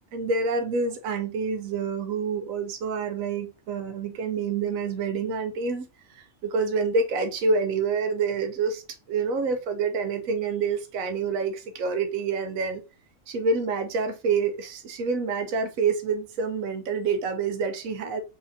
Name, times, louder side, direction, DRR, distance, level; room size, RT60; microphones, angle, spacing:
voice 1, 0.1-8.8 9.1-12.8 13.3-18.2, right 4 dB, 85° right, 1.1 m, -27 dB
5.8 x 2.9 x 2.6 m
omnidirectional pair, 1.4 m